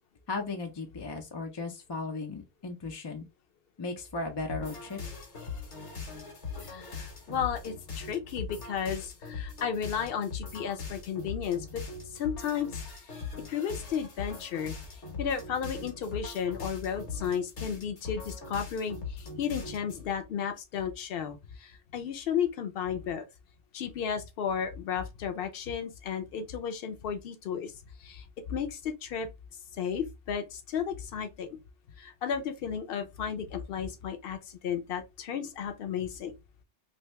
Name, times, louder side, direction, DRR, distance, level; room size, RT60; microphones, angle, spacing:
voice 1, 0.3-3.3 3.8-5.0, left 3 dB, 40° left, 0.4 m, -36 dB
sound 1, 4.5-20.0, left 5 dB, 75° left, 1.4 m, -41 dB
voice 2, 6.6-11.8 12.1-12.8 13.1-23.3 23.7-27.7 28.0-29.3 29.7-31.6 32.0-36.3, left 7 dB, 60° left, 0.8 m, -34 dB
2.9 x 2.6 x 3.1 m
omnidirectional pair, 1.2 m